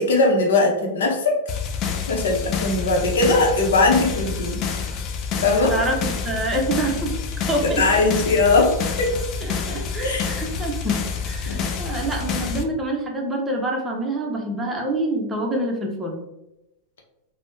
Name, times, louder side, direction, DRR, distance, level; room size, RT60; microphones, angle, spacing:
voice 1, 0.0-1.4 2.1-4.7 5.4-5.8 7.6-9.2 10.0-10.3 11.5-11.6, left 3 dB, 85° left, 1 dB, 0.6 m, -20 dB
sound 1, 1.5-12.6, left 6 dB, 40° left, 0.4 m, -28 dB
voice 2, 5.7-7.1 7.5-8.0 9.4-11.0 11.2-16.2, right 1 dB, 15° right, 0 dB, 0.6 m, -26 dB
3.3 x 2.0 x 2.6 m, 0.89 s
hypercardioid pair, 125°, 0 cm